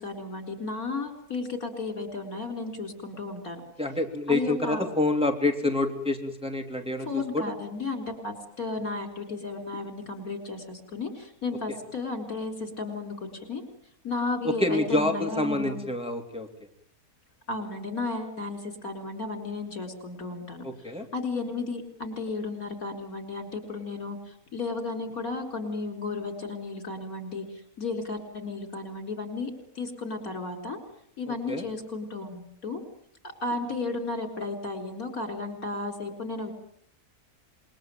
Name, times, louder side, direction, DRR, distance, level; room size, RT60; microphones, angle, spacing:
voice 1, 0.0-3.6 4.3-4.8 7.0-13.6 14.0-15.9 17.5-30.8 31.2-32.8 33.2-36.5, left 3 dB, 70° left, 6 dB, 4.6 m, -34 dB
voice 2, 3.8-7.1 7.3-7.4 14.4-16.5 20.6-21.0 31.5-31.7, left 2 dB, 5° right, 2 dB, 3.1 m, -27 dB
27.0 x 22.0 x 9.1 m, 0.68 s
omnidirectional pair, 1.6 m